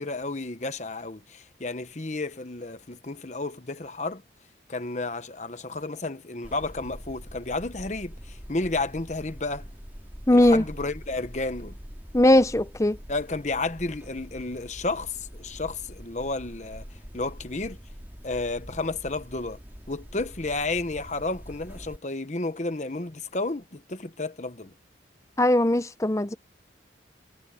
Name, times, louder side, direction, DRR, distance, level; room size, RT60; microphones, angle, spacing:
voice 1, 0.0-4.2 4.7-9.7 10.3-11.8 13.1-16.8 17.1-17.8 18.2-19.6 19.9-24.7, left 3 dB, 40° left, 1.1 m, -32 dB
sound 1, 6.4-22.0, equal, 10° right, 2.6 m, -44 dB
voice 2, 10.3-10.6 12.1-13.0 25.4-26.4, left 1 dB, 15° left, 0.7 m, -19 dB
head